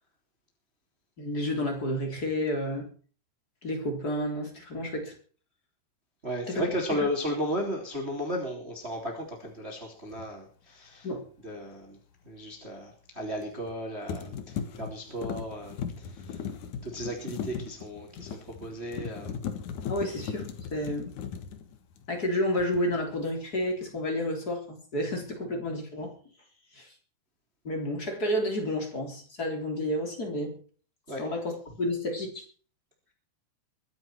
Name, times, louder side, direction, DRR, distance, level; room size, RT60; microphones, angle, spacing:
voice 1, 1.2-2.9 3.6-5.1 6.5-6.6 11.0-11.2 19.9-21.1 22.1-26.1 26.7-26.9 27.6-30.6 31.2-31.5 31.8-32.4, left 1 dB, 25° left, 2 dB, 3.6 m, -30 dB
voice 2, 6.2-11.1 11.4-12.0 12.2-19.3 31.1-31.3, equal, 15° right, 1 dB, 3.0 m, -35 dB
sound 1, 10.1-10.3 13.4-13.8 14.1-22.3 22.6-23.0, left 7 dB, 60° left, 2.4 m, -38 dB
23.5 x 8.8 x 4.6 m, 0.41 s
omnidirectional pair, 4.9 m